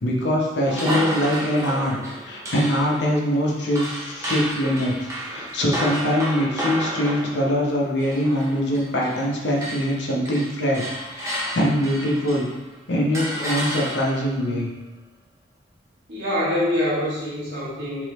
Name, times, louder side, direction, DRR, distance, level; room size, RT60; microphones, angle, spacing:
voice 1, 0.0-2.0 2.2-12.5 12.9-14.7, equal, 65° left, -3 dB, 0.8 m, -23 dB
sound 1, 0.6-9.3 9.6-12.6 13.1-14.3, right 1 dB, 15° right, 0.6 m, -31 dB
voice 2, 16.1-18.0, left 1 dB, 60° right, -7 dB, 1.2 m, -25 dB
3.5 x 3.3 x 3.1 m, 1.1 s
head